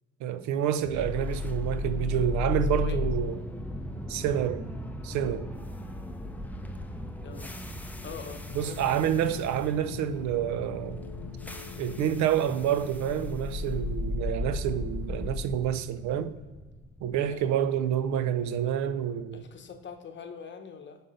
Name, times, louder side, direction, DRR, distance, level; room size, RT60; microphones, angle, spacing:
voice 1, 0.2-3.4 4.1-4.7 5.0-5.5 8.5-11.1 11.8-16.3 17.0-19.4, right 9 dB, 60° right, 0.5 m, -28 dB
sound 1, 0.8-18.9, left 2 dB, 5° left, 0.5 m, -36 dB
voice 2, 2.7-3.0 7.2-7.6 8.0-9.0 17.3-17.6 18.1-18.2 19.3-21.0, left 6 dB, 35° left, 0.9 m, -43 dB
sound 2, 8.5-14.0, left 9 dB, 75° left, 0.5 m, -44 dB
5.4 x 3.8 x 5.3 m
supercardioid pair, 70°, 32 cm